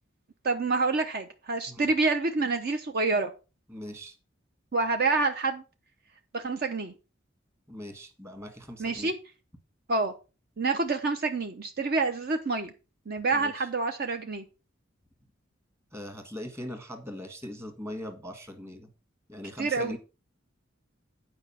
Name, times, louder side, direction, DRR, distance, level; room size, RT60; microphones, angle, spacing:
voice 1, 0.4-3.3 4.7-5.6 6.3-6.9 8.8-9.1 9.9-10.1 10.6-12.7 13.1-14.4 19.6-20.0, right 3 dB, 55° right, 6 dB, 0.7 m, -27 dB
voice 2, 3.7-4.1 7.7-9.1 13.3-13.7 15.9-18.9 19.3-20.0, left 1 dB, 15° right, 6 dB, 1.7 m, -40 dB
8.8 x 5.0 x 5.7 m, 0.32 s
head